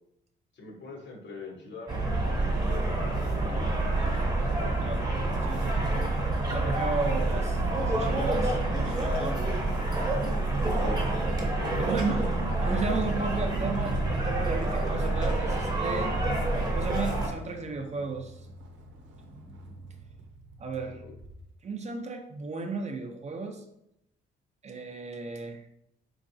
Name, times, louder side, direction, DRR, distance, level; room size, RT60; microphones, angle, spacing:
voice 1, 0.5-4.1 10.8-11.0 11.6-11.9 21.0-21.1, left 4 dB, 65° left, 1 dB, 1.0 m, -42 dB
sound 1, 1.9-17.3, right 2 dB, 20° right, 0.9 m, -28 dB
voice 2, 4.8-5.1 5.4-5.9 6.5-9.6 11.8-16.1 16.7-18.4 20.6-21.0 21.6-23.6 24.6-25.7, right 4 dB, 35° right, 4 dB, 0.5 m, -34 dB
Motor vehicle (road), 7.1-21.5 21.9-22.4, right 1 dB, 70° right, 0.7 m, -44 dB
3.7 x 3.1 x 2.6 m, 0.79 s
cardioid pair, 90°, 20 cm